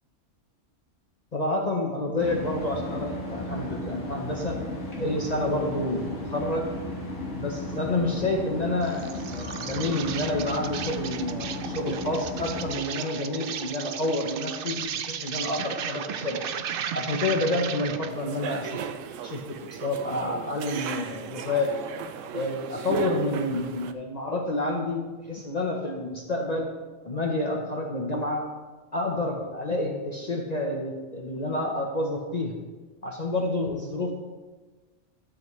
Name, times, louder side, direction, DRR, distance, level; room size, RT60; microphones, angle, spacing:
voice 1, 1.3-4.6 5.0-6.7 7.4-9.1 9.3-16.4 16.9-18.8 19.2-21.7 22.3-26.7 27.0-28.4 28.9-32.5 33.0-34.1, left 2 dB, 40° left, 0 dB, 0.8 m, -29 dB
sound 1, 2.2-12.8, left 1 dB, 85° left, 1.8 m, -35 dB
Insect, 8.8-18.2, right 8 dB, 60° right, 0.6 m, -35 dB
sound 2, 18.1-23.9, right 7 dB, 85° right, 0.9 m, -36 dB
12.0 x 7.5 x 3.1 m, 1.3 s
omnidirectional pair, 1.3 m